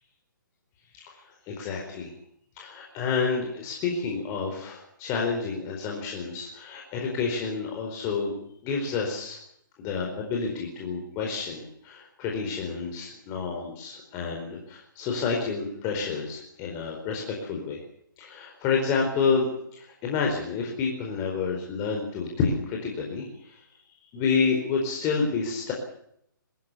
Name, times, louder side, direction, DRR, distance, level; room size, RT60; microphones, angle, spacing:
voice 1, 0.9-2.1 2.6-8.3 8.6-9.4 9.8-17.8 18.2-23.6 24.1-25.7, left 5 dB, 25° left, 0 dB, 4.6 m, -29 dB
22.5 x 15.0 x 8.4 m, 0.72 s
hypercardioid pair, 140°, 11 cm